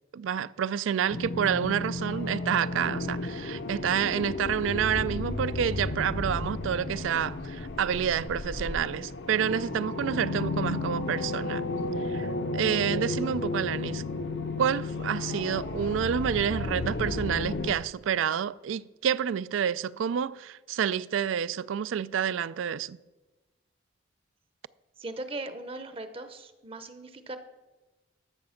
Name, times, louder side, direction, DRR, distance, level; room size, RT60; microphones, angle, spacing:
voice 1, 0.1-11.6 12.0-12.3 12.5-14.0 14.6-23.0, right 8 dB, 85° right, 0.3 m, -29 dB
sound 1, 1.1-17.7, left 2 dB, 60° left, 0.8 m, -33 dB
voice 2, 25.0-27.4, right 2 dB, 30° right, 0.7 m, -39 dB
12.5 x 7.0 x 5.7 m
head